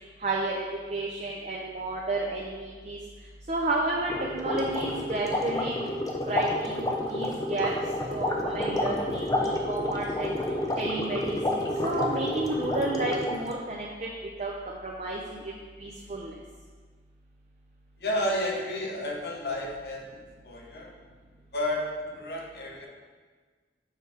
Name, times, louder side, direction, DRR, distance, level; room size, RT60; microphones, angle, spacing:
voice 1, 0.2-0.6 0.9-3.0 3.5-5.7 6.3-7.7 8.1-10.4 10.8-14.1 14.4-15.5 15.8-16.3, right 2 dB, 40° right, -2 dB, 0.5 m, -31 dB
sound 1, 4.1-13.5, left 1 dB, 20° left, 0.5 m, -29 dB
voice 2, 18.0-20.1 20.4-20.9 21.5-22.9, left 1 dB, 60° left, -1 dB, 0.9 m, -31 dB
6.5 x 4.9 x 3.4 m, 1.5 s
head